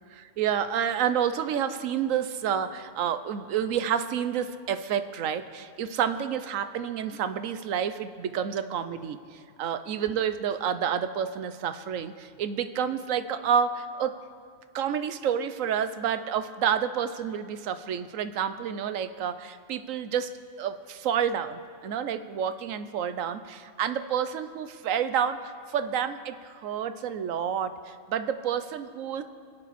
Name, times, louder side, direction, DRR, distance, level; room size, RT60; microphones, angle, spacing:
voice 1, 0.1-14.2 14.7-20.3 20.6-25.4 25.7-29.2, right 8 dB, 85° right, 11 dB, 1.1 m, -29 dB
24.0 x 8.7 x 4.2 m, 2.2 s
omnidirectional pair, 1.3 m